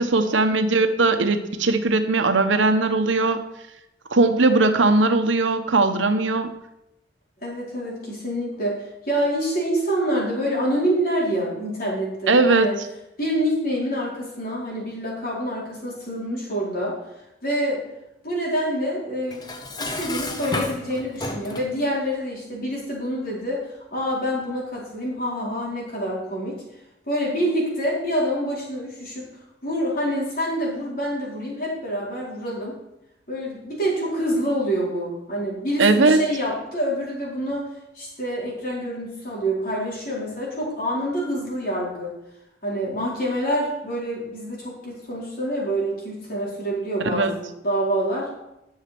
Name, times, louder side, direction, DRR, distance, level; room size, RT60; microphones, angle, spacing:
voice 1, 0.0-3.4 4.1-6.5 12.3-12.7 35.8-36.2 47.1-47.3, right 3 dB, 90° right, 7 dB, 1.0 m, -19 dB
voice 2, 7.4-12.8 13.2-17.0 17.4-17.8 18.2-19.4 19.8-26.6 27.1-29.3 29.6-32.8 33.3-37.7 37.9-42.1 42.6-48.3, equal, 50° left, -5 dB, 4.4 m, -26 dB
Dishes pots and pans, 19.3-21.8, left 2 dB, 20° left, 0.9 m, -31 dB
11.5 x 6.6 x 6.0 m, 0.88 s
head